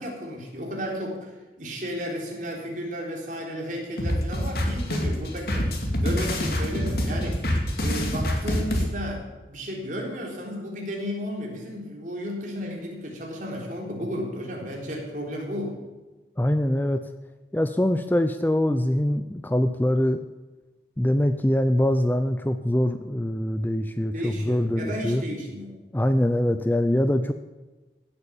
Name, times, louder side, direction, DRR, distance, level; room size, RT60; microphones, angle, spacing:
voice 1, 0.0-7.4 7.8-15.8 24.1-25.7, equal, 45° right, -1 dB, 3.8 m, -33 dB
sound 1, 4.0-8.9, equal, 55° left, 2.4 m, -26 dB
voice 2, 16.4-17.0 17.5-20.2 21.0-25.2 25.9-27.3, left 1 dB, 10° left, 9 dB, 0.5 m, -23 dB
16.5 x 8.9 x 7.1 m, 1.2 s
head